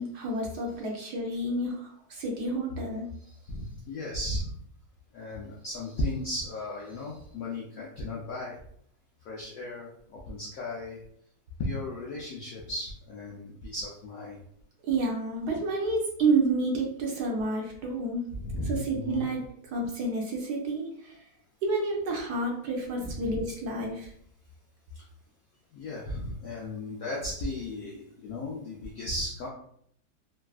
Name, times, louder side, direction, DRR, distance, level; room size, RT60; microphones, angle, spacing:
voice 1, 0.0-3.0 14.9-18.2 18.7-19.4 19.7-21.2 21.6-24.1, right 2 dB, 70° right, -1 dB, 1.0 m, -29 dB
voice 2, 3.2-4.5 5.1-8.6 9.3-11.0 11.6-14.4 18.3-19.3 23.0-23.4 25.7-29.5, left 1 dB, 75° left, -4 dB, 0.8 m, -35 dB
3.4 x 2.3 x 2.3 m, 0.67 s
omnidirectional pair, 2.0 m